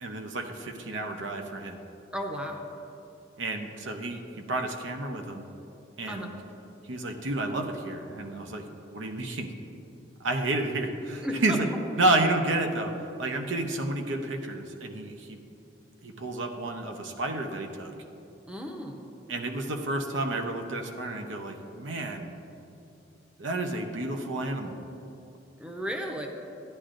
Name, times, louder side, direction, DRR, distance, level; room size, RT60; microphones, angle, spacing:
voice 1, 0.0-1.8 3.4-5.4 6.0-6.3 6.8-8.6 8.9-9.5 10.2-11.5 12.0-12.9 13.2-15.4 16.0-17.9 19.3-22.3 23.4-24.8, right 2 dB, 85° right, 4 dB, 0.8 m, -30 dB
voice 2, 2.1-2.7 6.1-6.3 11.2-11.6 18.5-19.0 25.6-26.3, equal, 5° right, 1 dB, 0.7 m, -34 dB
13.5 x 10.0 x 2.5 m, 2.8 s
head